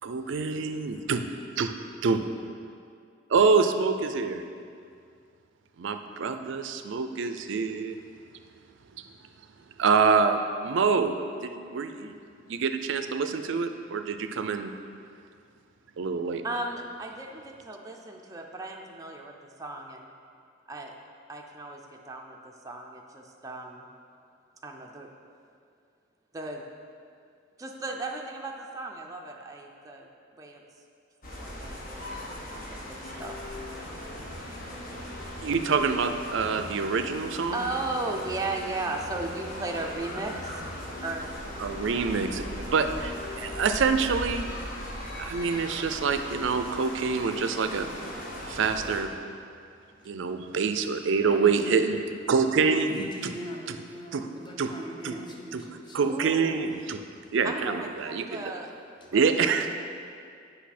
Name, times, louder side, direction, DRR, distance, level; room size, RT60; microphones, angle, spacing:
voice 1, 0.0-1.2 1.6-1.7 2.0-2.2 3.3-4.4 5.8-8.0 9.8-12.1 12.5-14.7 16.0-16.4 35.4-37.7 41.6-44.5 45.2-47.8 48.5-49.1 50.1-52.0 52.3-53.3 53.7-53.8 54.1-54.3 54.6-54.7 55.0-55.1 55.5-55.7 55.9-57.0 57.3-58.4 59.1-59.7, right 5 dB, 65° right, 8 dB, 0.4 m, -26 dB
voice 2, 16.4-19.3 19.6-20.1 20.7-20.9 21.3-22.4 22.6-23.8 24.6-25.1 26.3-26.6 27.6-30.1 30.4-30.6 31.4-33.3 37.5-40.3 41.0-41.3 56.0-56.7 57.4-58.7 59.0-59.7, right 2 dB, 15° right, 0 dB, 0.5 m, -36 dB
sound 1, 31.2-49.0, left 1 dB, 45° left, 1.1 m, -39 dB
sound 2, 33.0-43.8, left 1 dB, 75° left, 1.2 m, -43 dB
voice 3, 51.2-51.9 52.9-56.1, equal, 25° left, -1 dB, 0.9 m, -40 dB
8.2 x 5.4 x 4.2 m, 2.3 s
head